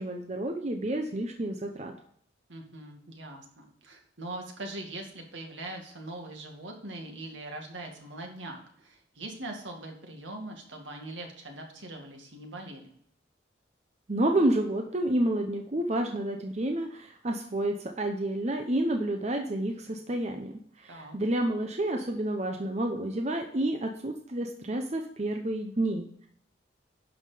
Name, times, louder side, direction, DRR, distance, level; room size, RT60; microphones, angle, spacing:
voice 1, 0.0-1.9 14.1-26.3, right 1 dB, 35° right, 4 dB, 0.8 m, -30 dB
voice 2, 2.5-13.0 20.9-21.2, right 2 dB, 75° right, 2 dB, 2.1 m, -42 dB
11.0 x 5.9 x 5.1 m, 0.62 s
head